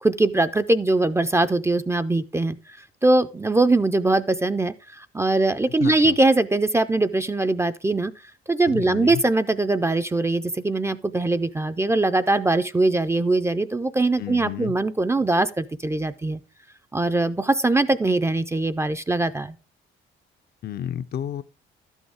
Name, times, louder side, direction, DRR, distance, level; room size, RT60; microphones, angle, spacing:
voice 1, 0.0-2.6 3.0-8.1 8.5-16.4 16.9-19.6, right 2 dB, 15° right, 0.4 m, -22 dB
voice 2, 5.8-6.2 8.7-9.2 14.2-14.8 20.6-21.4, left 10 dB, 50° left, 0.5 m, -31 dB
12.0 x 6.3 x 3.4 m
cardioid pair, 100°, 21 cm